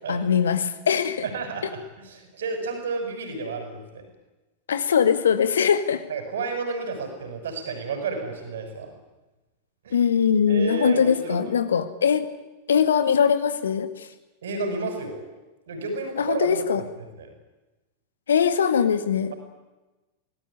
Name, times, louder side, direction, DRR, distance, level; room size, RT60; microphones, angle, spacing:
voice 1, 0.1-1.3 4.7-6.0 9.9-12.3 12.7-14.1 16.2-16.8 18.3-19.3, left 7 dB, 65° left, 12 dB, 2.0 m, -21 dB
voice 2, 1.3-4.0 6.1-8.9 9.8-10.0 10.5-11.4 14.4-15.2 15.7-17.3, right 4 dB, 65° right, 6 dB, 6.6 m, -31 dB
25.0 x 18.5 x 10.0 m, 1.1 s
figure-of-eight pair, 90°, 0 cm